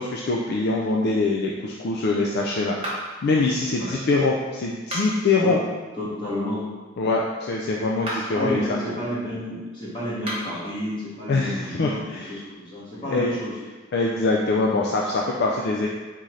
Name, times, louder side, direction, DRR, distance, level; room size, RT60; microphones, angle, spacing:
voice 1, 0.0-2.9 3.2-5.6 7.0-8.6 11.3-12.3 13.1-13.3 13.9-15.9, left 3 dB, 55° left, -2 dB, 0.4 m, -23 dB
sound 1, 2.8-3.3 4.8-5.3 7.9-8.4 10.1-10.6, equal, 30° right, 1.2 m, -32 dB
voice 2, 6.0-6.6 8.3-13.6, equal, 25° left, -9 dB, 1.5 m, -31 dB
4.1 x 3.7 x 3.1 m, 1.3 s
head